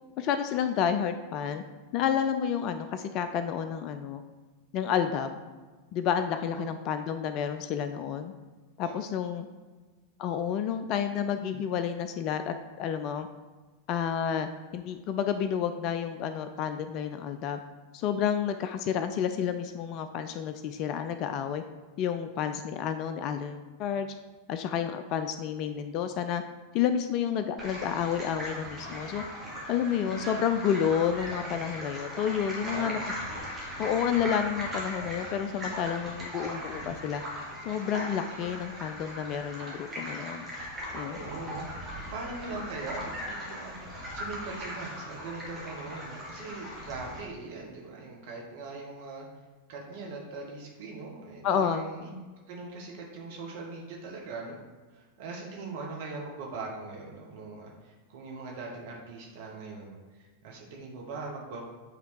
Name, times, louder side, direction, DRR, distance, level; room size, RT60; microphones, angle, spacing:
voice 1, 0.2-1.6 1.9-4.2 4.7-5.4 5.9-8.3 8.8-9.5 10.2-13.3 13.9-17.6 17.9-21.6 22.0-24.1 24.5-26.4 26.7-29.2 29.7-33.0 33.8-37.2 37.6-40.5 40.9-41.2 51.4-51.8, left 8 dB, 40° left, 9 dB, 0.3 m, -30 dB
sound 1, 27.6-47.2, equal, 15° right, 1.8 m, -39 dB
sound 2, 29.4-32.1, right 3 dB, 35° right, 1.3 m, -56 dB
voice 2, 32.6-33.1 41.1-41.7 42.1-49.3 49.7-52.1 52.5-54.6 54.9-61.6, right 3 dB, 50° right, -1 dB, 1.1 m, -41 dB
7.9 x 3.3 x 4.6 m, 1.3 s
figure-of-eight pair, 90°, 0 cm